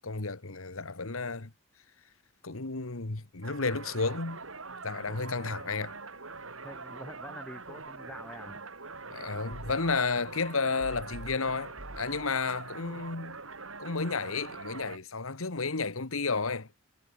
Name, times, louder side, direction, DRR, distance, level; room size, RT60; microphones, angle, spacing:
voice 1, 0.0-1.5 2.4-4.4 4.8-5.9 9.1-13.4 13.8-16.7, left 4 dB, 90° left, 1.6 m, -32 dB
sound 1, 3.4-15.0, right 3 dB, 80° right, 6.2 m, -43 dB
voice 2, 6.6-8.6, equal, 5° left, 6.4 m, -46 dB
head